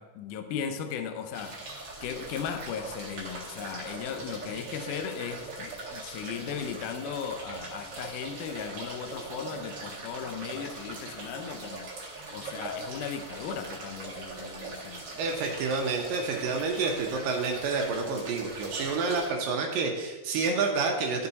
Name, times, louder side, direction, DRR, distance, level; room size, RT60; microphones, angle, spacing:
voice 1, 0.0-15.1, left 7 dB, 85° left, 7 dB, 1.8 m, -37 dB
sound 1, 1.3-19.3, right 2 dB, 40° right, 1.8 m, -41 dB
voice 2, 15.2-21.3, right 4 dB, 75° right, 1 dB, 2.3 m, -29 dB
13.5 x 4.6 x 4.1 m, 1.2 s
omnidirectional pair, 4.5 m